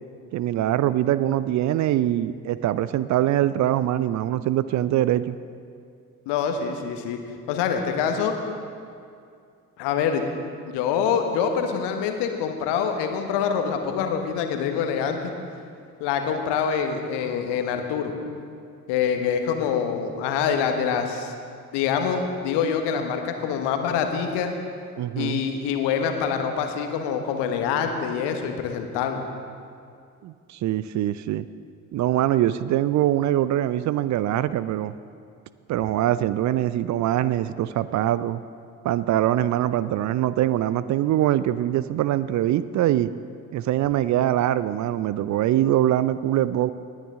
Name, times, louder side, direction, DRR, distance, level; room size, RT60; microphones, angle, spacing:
voice 1, 0.3-5.4 25.0-25.4 30.2-31.5 31.9-34.9 35.7-38.4 38.8-43.1 43.5-46.7, right 13 dB, 40° right, 15 dB, 0.4 m, -23 dB
voice 2, 6.3-7.2 7.5-8.3 9.8-10.2 10.7-15.2 16.0-18.1 18.9-21.3 21.7-24.5 25.2-29.2, left 7 dB, 65° left, 5 dB, 1.3 m, -25 dB
19.0 x 9.7 x 3.7 m, 2.4 s
figure-of-eight pair, 45°, 45 cm